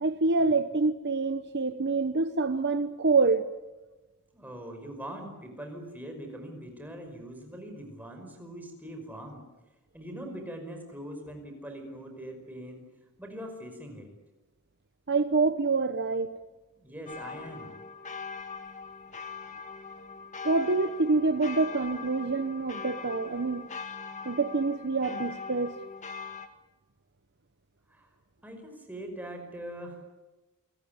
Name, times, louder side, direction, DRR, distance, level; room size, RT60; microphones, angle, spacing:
voice 1, 0.0-3.5 15.1-16.3 20.4-23.7 24.2-25.7, right 3 dB, 50° right, 10 dB, 0.9 m, -26 dB
voice 2, 4.3-9.5 9.9-12.9 13.2-14.1 16.8-17.7 27.9-28.1 28.4-30.1, right 1 dB, 10° right, 3 dB, 5.5 m, -42 dB
sound 1, 17.1-26.5, left 5 dB, 35° left, 2.0 m, -41 dB
29.0 x 18.0 x 9.6 m, 1.1 s
head